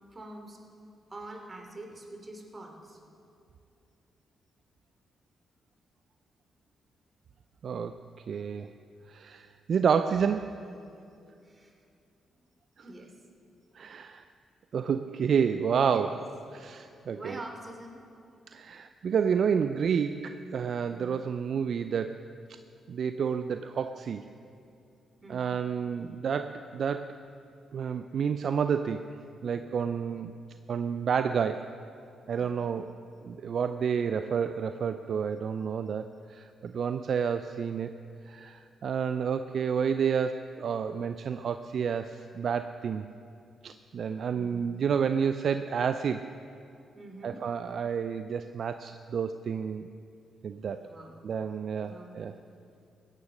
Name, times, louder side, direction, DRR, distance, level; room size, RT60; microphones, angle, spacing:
voice 1, 0.1-0.6 1.1-3.0 11.4-11.7 12.8-13.1 15.2-15.4 15.7-16.1 17.1-18.0 25.2-25.5 32.3-32.8 44.3-44.8 46.9-47.4 50.8-51.2 51.8-52.4, right 1 dB, 35° right, 2 dB, 3.0 m, -45 dB
voice 2, 7.6-8.0 8.3-8.7 9.1-10.6 13.7-14.2 14.7-16.2 16.5-17.4 18.5-22.3 22.9-24.2 25.3-27.1 27.7-29.1 29.4-30.3 30.7-31.7 32.3-32.9 33.2-38.0 38.3-43.0 43.6-46.3 47.2-49.9 50.4-50.9 51.2-52.4, right 7 dB, 65° right, 10 dB, 0.4 m, -30 dB
16.0 x 9.8 x 6.3 m, 2.6 s
hypercardioid pair, 45°, 0 cm